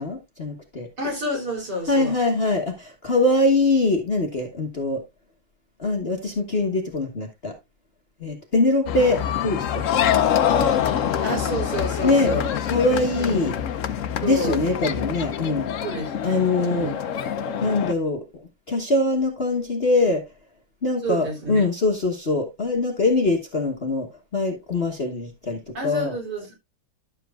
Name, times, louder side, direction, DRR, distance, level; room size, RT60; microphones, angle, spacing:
voice 1, 0.0-0.9 1.9-5.0 5.8-7.5 8.2-10.0 12.0-12.3 12.7-13.5 14.2-15.7 16.2-16.9 17.6-18.2 18.7-20.2 20.8-26.1, left 2 dB, 35° left, 1.3 m, -23 dB
voice 2, 1.0-2.2 11.2-12.6 13.2-13.4 14.2-14.6 15.8-17.0 21.0-21.7 25.7-26.5, equal, 55° right, 4.3 m, -29 dB
sound 1, 8.9-17.9, left 9 dB, 75° left, 0.7 m, -25 dB
11.5 x 7.6 x 2.4 m
omnidirectional pair, 2.2 m